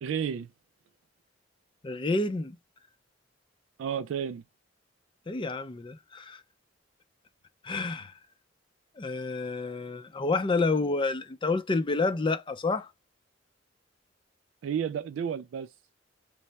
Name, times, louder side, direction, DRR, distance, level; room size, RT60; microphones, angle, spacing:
voice 1, 0.0-0.5 3.8-4.4 14.6-15.7, right 8 dB, 90° right, 0.3 m, -31 dB
voice 2, 1.8-2.6 5.3-6.4 7.6-8.1 9.0-12.9, left 3 dB, 25° left, 0.5 m, -29 dB
3.3 x 2.0 x 4.0 m
head